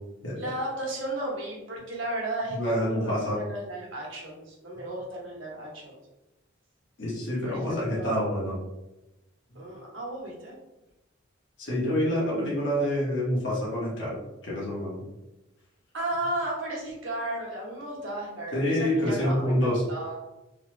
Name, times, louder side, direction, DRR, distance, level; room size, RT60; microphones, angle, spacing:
voice 1, 0.4-6.0 7.4-8.3 9.5-10.5 15.9-20.2, right 1 dB, 75° right, -3 dB, 1.0 m, -34 dB
voice 2, 2.5-3.4 7.0-8.6 11.6-14.2 14.4-15.0 18.5-19.8, equal, 65° left, -6 dB, 1.0 m, -27 dB
3.1 x 2.0 x 3.1 m, 0.98 s
head